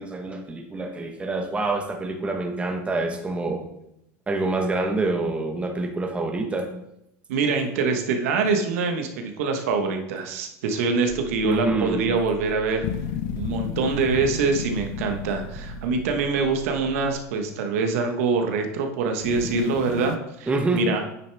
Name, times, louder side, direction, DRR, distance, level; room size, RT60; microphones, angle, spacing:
voice 1, 0.0-3.6 4.3-6.7 11.4-12.1 20.5-20.9, right 2 dB, 15° right, 4 dB, 1.2 m, -26 dB
voice 2, 7.3-12.8 13.3-21.0, right 4 dB, 80° right, 4 dB, 1.2 m, -24 dB
sound 1, 11.1-17.1, right 13 dB, 40° right, 0.7 m, -41 dB
sound 2, 12.8-16.8 19.2-20.2, left 10 dB, 70° left, 0.6 m, -33 dB
9.2 x 6.6 x 3.5 m, 0.80 s
supercardioid pair, 120°, 8 cm